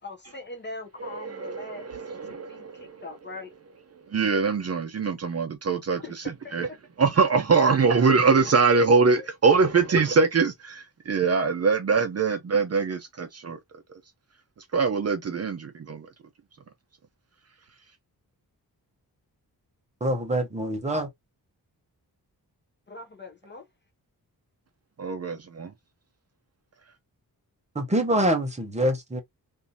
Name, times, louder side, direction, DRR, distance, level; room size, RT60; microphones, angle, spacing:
voice 1, 0.0-3.5 6.0-6.8 9.2-9.3 9.6-9.7 22.9-23.7, left 3 dB, 30° left, 0.6 m, -41 dB
voice 2, 1.0-3.0 4.1-6.0 6.5-6.7 7.0-13.6 14.7-16.1 25.0-25.7, right 4 dB, 40° right, 0.5 m, -23 dB
voice 3, 20.0-21.1 27.7-29.2, right 1 dB, 20° right, 0.8 m, -25 dB
3.5 x 2.6 x 2.6 m
wide cardioid pair, 175°, 38 cm